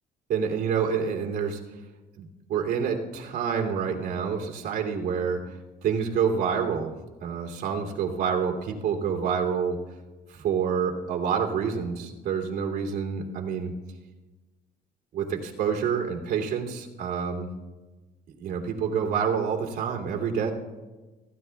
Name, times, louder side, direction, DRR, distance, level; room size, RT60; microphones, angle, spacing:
voice 1, 0.3-1.6 2.2-5.6 5.8-6.9 7.2-9.8 10.3-13.7 15.1-17.5 18.4-20.5, right 6 dB, 70° right, 1 dB, 2.9 m, -27 dB
26.0 x 15.5 x 2.3 m, 1.2 s
cardioid pair, 110°, 17 cm